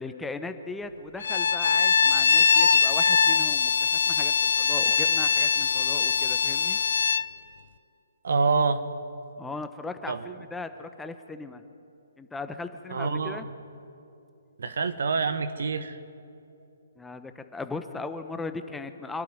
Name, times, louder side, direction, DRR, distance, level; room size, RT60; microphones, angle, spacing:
voice 1, 0.0-6.8 9.4-11.6 12.2-13.5 17.0-19.2, left 3 dB, 5° left, 8 dB, 1.0 m, -38 dB
Bowed string instrument, 1.2-7.3, left 6 dB, 65° left, 0.7 m, -22 dB
voice 2, 8.2-8.8 10.1-10.3 12.9-13.5 14.6-16.0, right 4 dB, 65° right, 10 dB, 1.4 m, -26 dB
26.0 x 12.0 x 9.5 m, 2.7 s
figure-of-eight pair, 135°, 0 cm